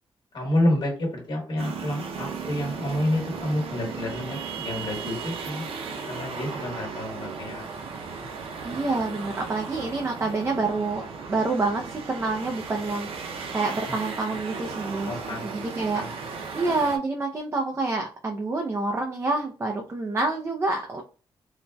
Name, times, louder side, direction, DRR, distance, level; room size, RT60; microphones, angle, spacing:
voice 1, 0.3-5.7 6.1-7.9 8.2-8.3 15.0-15.5 15.9-16.1, left 1 dB, 60° left, 1 dB, 1.3 m, -29 dB
sound 1, 1.6-17.0, right 5 dB, 85° right, 0.5 m, -36 dB
voice 2, 8.6-21.0, right 3 dB, 30° right, 2 dB, 0.5 m, -28 dB
3.9 x 2.1 x 2.2 m, 0.38 s
cardioid pair, 110°, 9 cm